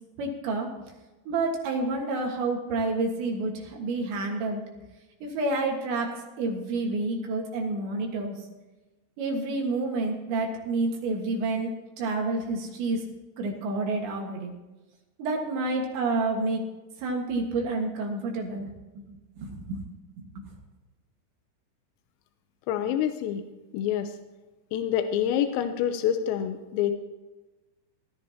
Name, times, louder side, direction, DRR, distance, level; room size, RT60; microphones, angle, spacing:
voice 1, 0.2-0.7 1.3-4.6 5.2-8.4 9.2-11.7 12.0-13.0 13.4-14.5 15.2-16.6 17.0-19.8 20.2-20.5, right 3 dB, 65° right, 1 dB, 3.6 m, -29 dB
voice 2, 22.7-23.4 23.7-24.1 24.7-26.9, left 10 dB, 85° left, 7 dB, 3.5 m, -27 dB
19.5 x 13.0 x 2.9 m, 1.1 s
omnidirectional pair, 5.9 m